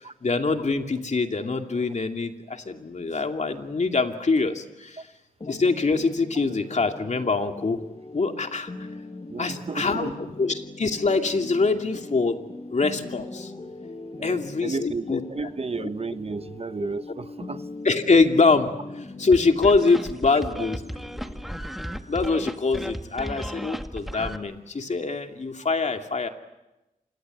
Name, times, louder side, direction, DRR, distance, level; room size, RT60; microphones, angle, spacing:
voice 1, 0.2-5.0 5.5-7.8 8.1-8.7 9.4-10.1 10.4-12.4 12.7-13.5 14.2-15.2 15.8-15.9 17.8-18.7 19.2-20.8 22.1-26.3, left 4 dB, 55° left, 5 dB, 2.6 m, -24 dB
sound 1, 5.4-25.0, left 2 dB, 35° left, 2.6 m, -41 dB
voice 2, 9.3-10.1 14.2-15.0 15.3-17.7 20.6-20.7, right 4 dB, 45° right, 12 dB, 1.1 m, -33 dB
sound 2, 19.3-24.4, equal, ahead, 1.9 m, -35 dB
27.0 x 21.0 x 9.3 m, 1.0 s
cardioid pair, 50°, 14 cm